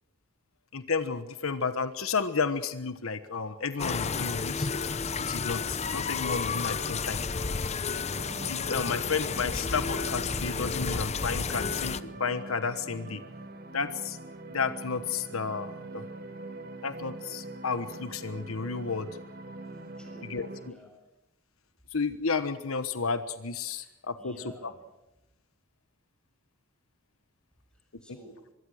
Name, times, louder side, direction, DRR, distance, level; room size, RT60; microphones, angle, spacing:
voice 1, 0.7-4.9 5.3-7.2 8.5-13.2 13.7-14.2 14.5-16.1 16.8-19.1 20.3-20.7 21.9-24.3 24.6-24.7, left 5 dB, 80° left, 10 dB, 1.2 m, -32 dB
sound 1, 3.8-12.0, left 5 dB, 30° left, 0.7 m, -31 dB
sound 2, 8.2-20.7, right 2 dB, 45° right, 2.0 m, -43 dB
voice 2, 19.9-20.4 20.7-21.0 23.8-23.9 24.2-24.9 27.7-28.4, equal, 5° left, 1 dB, 7.0 m, -51 dB
25.0 x 22.5 x 6.5 m, 0.96 s
head